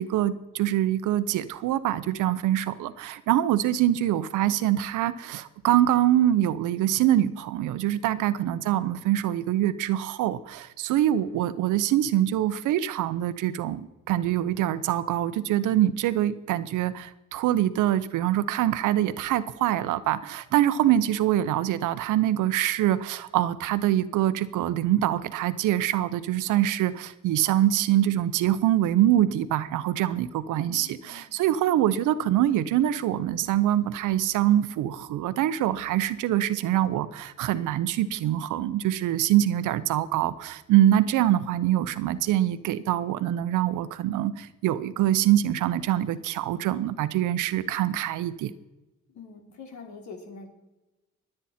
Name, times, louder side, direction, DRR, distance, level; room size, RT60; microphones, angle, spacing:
voice 1, 0.0-48.5, right 12 dB, 85° right, 14 dB, 0.8 m, -24 dB
voice 2, 30.5-31.4 49.1-50.5, left 5 dB, 70° left, 3 dB, 3.1 m, -45 dB
22.5 x 8.9 x 4.3 m, 1.0 s
cardioid pair, 90°, 30 cm